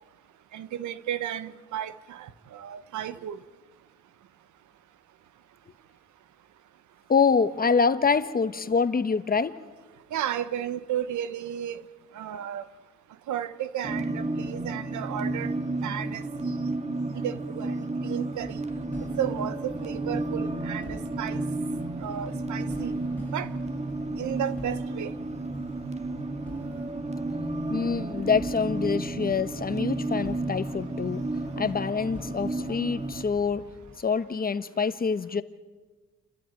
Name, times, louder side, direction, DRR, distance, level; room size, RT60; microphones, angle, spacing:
voice 1, 0.5-3.4 10.1-11.8 12.1-12.6 13.3-15.5 15.8-16.6 17.1-18.6 19.2-21.4 22.0-22.9 23.3-23.5 24.2-25.1, right 10 dB, 75° right, 1.0 m, -33 dB
voice 2, 7.1-9.6 27.7-31.3 31.6-33.7 34.0-35.4, left 5 dB, 30° left, 1.0 m, -25 dB
sound 1, 13.8-33.2, right 2 dB, 20° right, 1.7 m, -32 dB
sound 2, 18.4-34.0, left 1 dB, 5° left, 7.3 m, -48 dB
29.5 x 13.5 x 9.0 m
cardioid pair, 90°, 30 cm